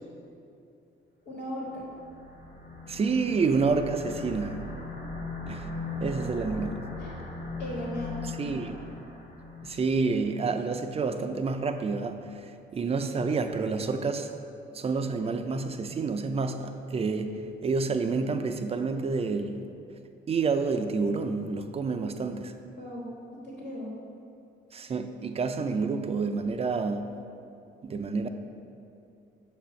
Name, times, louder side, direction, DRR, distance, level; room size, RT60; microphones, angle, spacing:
voice 1, 1.2-1.9 6.0-6.5 7.0-7.2 7.6-8.9 12.8-13.0 22.8-23.1 23.4-23.9, equal, 65° left, -4 dB, 1.4 m, -38 dB
sound 1, 1.7-10.4, left 3 dB, 40° left, 1.2 m, -39 dB
voice 2, 2.9-4.6 5.5-5.7 6.0-6.8 8.4-8.8 9.6-12.4 12.7-14.3 14.7-19.6 20.3-22.5 24.7-27.1 27.8-28.3, right 4 dB, 30° right, 7 dB, 0.4 m, -29 dB
7.1 x 2.5 x 5.7 m, 2.6 s
cardioid pair, 90°, 20 cm